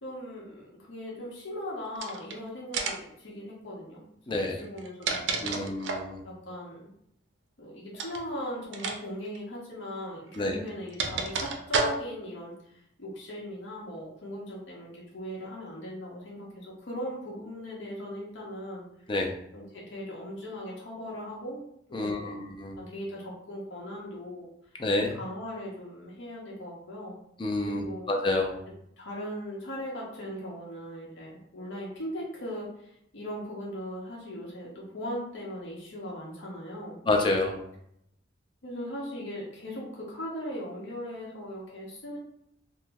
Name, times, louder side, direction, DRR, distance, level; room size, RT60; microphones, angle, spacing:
voice 1, 0.0-4.0 4.3-5.6 6.2-6.9 7.6-12.7 13.0-18.8 19.5-21.6 21.9-22.4 22.8-24.5 25.1-27.1 27.6-28.1 29.0-37.0 38.6-42.2, equal, 85° left, -4 dB, 0.8 m, -39 dB
sound 1, 1.9-2.3 2.7-3.1 4.6-6.1 7.9-8.2 8.7-9.0 9.2-9.4 10.3-12.3, right 4 dB, 80° right, 0.4 m, -31 dB
voice 2, 4.3-4.6 5.4-6.2 10.4-10.6 19.1-19.3 21.9-22.8 24.8-25.1 27.4-28.6 37.1-37.6, left 2 dB, 25° left, 3 dB, 0.4 m, -28 dB
3.0 x 2.0 x 3.4 m, 0.73 s
head